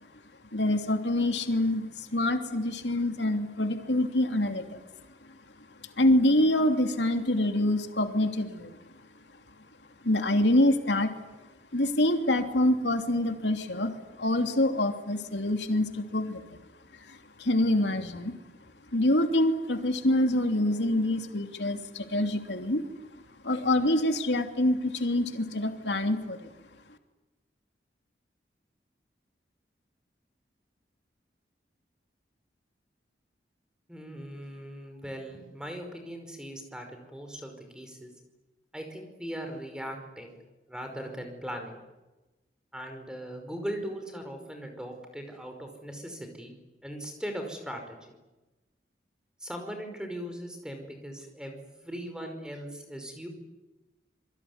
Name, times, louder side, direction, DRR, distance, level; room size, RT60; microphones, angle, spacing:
voice 1, 0.5-4.8 5.8-8.8 10.0-11.1 11.7-16.6 17.0-18.4 18.9-22.8 23.4-26.5, left 1 dB, 85° left, 5 dB, 3.0 m, -26 dB
voice 2, 33.9-38.1 38.7-40.4 40.7-41.8 42.7-46.5 46.8-48.0 49.4-53.3, equal, 5° right, 5 dB, 5.3 m, -39 dB
27.0 x 23.0 x 9.7 m, 1.1 s
head